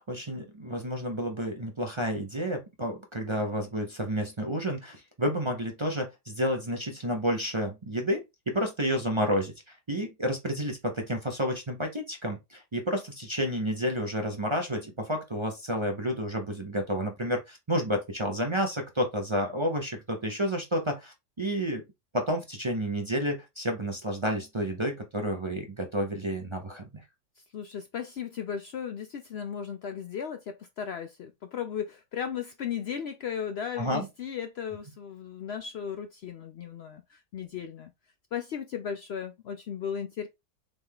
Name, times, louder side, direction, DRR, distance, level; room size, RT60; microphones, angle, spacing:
voice 1, 0.0-21.8 22.1-27.0 33.8-34.1, equal, 35° right, 0.4 m, -30 dB
voice 2, 27.4-37.9 38.3-40.3, left 8 dB, 85° left, 0.5 m, -36 dB
3.9 x 3.3 x 3.5 m
omnidirectional pair, 1.7 m